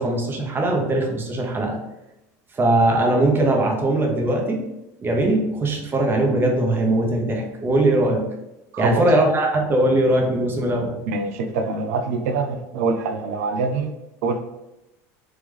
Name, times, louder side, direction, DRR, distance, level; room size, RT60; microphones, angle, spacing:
voice 1, 0.0-1.8 2.5-4.6 5.0-8.3 8.8-11.0, right 1 dB, 25° right, 1 dB, 0.9 m, -20 dB
voice 2, 11.1-13.9 14.2-14.4, right 4 dB, 80° right, 7 dB, 0.5 m, -24 dB
3.4 x 3.0 x 3.5 m, 0.94 s
supercardioid pair, 110°, 8 cm